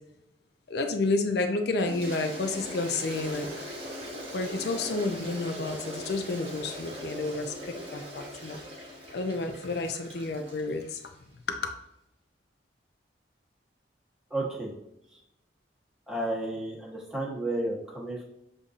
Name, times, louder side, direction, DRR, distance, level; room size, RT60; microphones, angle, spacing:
voice 1, 0.7-3.7 4.3-8.6 9.1-11.1 11.5-11.7, left 3 dB, 60° left, 5 dB, 0.5 m, -30 dB
Toilet flush, 1.8-11.1, equal, 30° right, 1.1 m, -40 dB
voice 2, 14.3-14.7 15.1-15.2 16.1-18.2, right 1 dB, 5° right, -5 dB, 1.1 m, -32 dB
6.8 x 2.6 x 2.4 m, 0.83 s
head